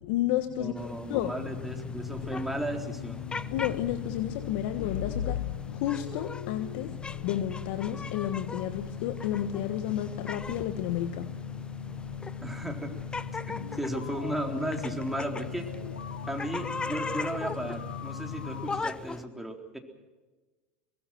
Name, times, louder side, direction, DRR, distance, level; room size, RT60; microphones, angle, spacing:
voice 1, 0.0-1.3 3.5-6.9 7.2-11.6, left 12 dB, 65° left, 10 dB, 1.4 m, -31 dB
voice 2, 0.6-3.2 12.4-12.9 13.5-15.7 16.3-19.8, right 1 dB, 5° right, 3 dB, 3.9 m, -35 dB
sound 1, 0.7-19.2, left 4 dB, 15° left, 1.1 m, -40 dB
sound 2, 1.4-18.8, left 8 dB, 85° left, 1.8 m, -39 dB
22.5 x 22.5 x 6.2 m, 1.3 s
hypercardioid pair, 85°, 6 cm